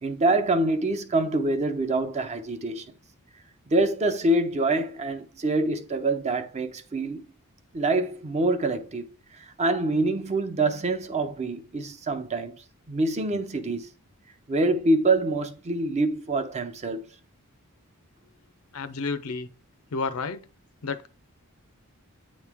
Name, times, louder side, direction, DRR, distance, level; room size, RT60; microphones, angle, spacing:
voice 1, 0.0-2.8 3.7-7.2 7.7-9.1 9.4-12.6 12.9-13.9 14.5-17.1, right 2 dB, 30° right, 0.5 m, -25 dB
voice 2, 18.7-19.5 19.9-20.5 20.8-21.1, left 4 dB, 70° left, 0.6 m, -31 dB
8.9 x 3.1 x 3.4 m
head